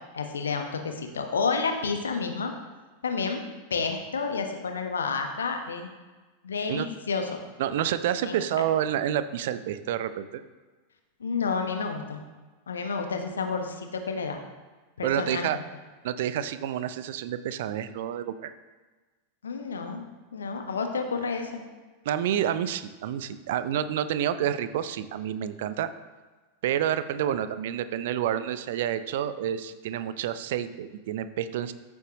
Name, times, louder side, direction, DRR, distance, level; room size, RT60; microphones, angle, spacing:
voice 1, 0.1-2.5 3.0-3.4 3.7-5.9 6.4-7.3 8.2-8.4 11.2-12.2 12.7-14.4 15.0-15.6 19.4-20.0 20.3-21.6, left 5 dB, 70° left, 5 dB, 1.2 m, -30 dB
voice 2, 7.6-10.4 15.0-15.6 16.0-18.5 22.1-25.9 26.6-31.7, right 10 dB, 55° right, 13 dB, 0.6 m, -29 dB
14.5 x 7.1 x 3.1 m, 1.3 s
figure-of-eight pair, 90°, 0 cm